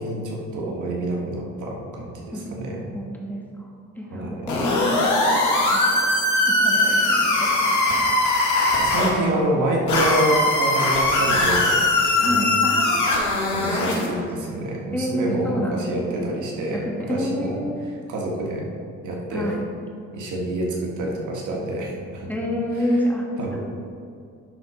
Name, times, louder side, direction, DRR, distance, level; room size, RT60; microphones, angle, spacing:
voice 1, 0.0-2.9 4.1-4.5 8.8-12.6 12.9-13.0 13.3-17.6 18.1-18.6 19.0-19.5 20.1-22.3 23.4-23.6, right 1 dB, 80° right, -2 dB, 1.9 m, -27 dB
voice 2, 2.9-3.7 4.0-6.1 6.5-7.8 12.2-13.2 13.7-14.1 14.9-16.2 16.7-17.9 19.3-19.6 22.3-23.2 23.5-23.6, equal, 5° left, -2 dB, 1.5 m, -28 dB
sound 1, 4.5-9.1 9.9-14.1, left 2 dB, 75° left, 2.1 m, -20 dB
11.0 x 4.1 x 5.1 m, 2.4 s
cardioid pair, 90°, 30 cm